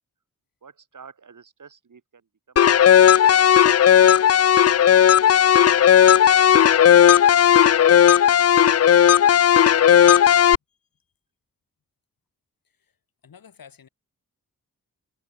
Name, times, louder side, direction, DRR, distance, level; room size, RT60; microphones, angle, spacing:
voice 1, 0.6-4.2 4.5-4.9 5.6-8.3 8.5-9.3, right 6 dB, 65° right, 7.6 m, -52 dB
sound 1, 2.6-10.6, left 9 dB, 50° left, 0.4 m, -14 dB
voice 2, 13.2-13.9, left 7 dB, 85° left, 7.4 m, -49 dB
wide cardioid pair, 90°, 33 cm